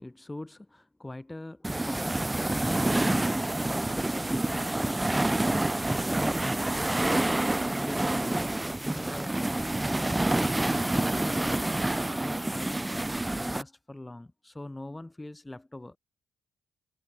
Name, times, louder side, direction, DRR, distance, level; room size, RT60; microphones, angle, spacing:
voice 1, 0.0-7.3 7.7-8.5 8.8-11.6 12.2-16.0, left 2 dB, 10° left, 2.6 m, -43 dB
sound 1, 1.6-13.6, right 1 dB, 10° right, 1.4 m, -28 dB
cardioid pair, 90°, 0 cm